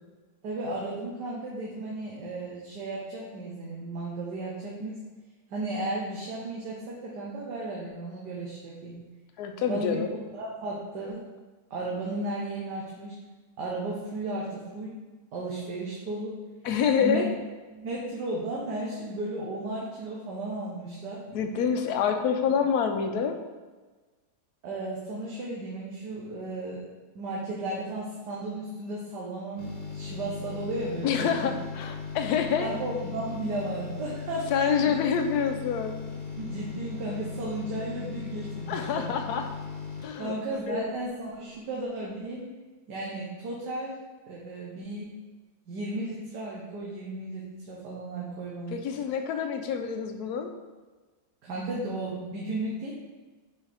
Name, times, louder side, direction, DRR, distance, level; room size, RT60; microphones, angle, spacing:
voice 1, 0.4-5.0 5.5-8.9 9.7-10.0 10.4-11.3 11.7-13.2 13.6-15.0 15.3-16.4 17.0-17.2 17.7-21.2 24.6-26.8 27.1-31.3 32.6-35.0 36.4-39.1 40.2-42.5 42.9-43.9 44.3-45.1 45.7-48.8 51.4-52.9, right 2 dB, 80° right, -4 dB, 1.6 m, -34 dB
voice 2, 9.4-10.1 16.6-17.3 21.3-23.3 31.0-32.7 34.5-36.0 38.7-39.5 40.0-40.3 40.7-40.9 48.7-50.5, left 7 dB, 70° left, 6 dB, 1.2 m, -27 dB
sound 1, 29.6-41.2 41.5-41.6, left 5 dB, 40° left, 1.5 m, -38 dB
5.6 x 5.5 x 3.5 m, 1.3 s
omnidirectional pair, 1.8 m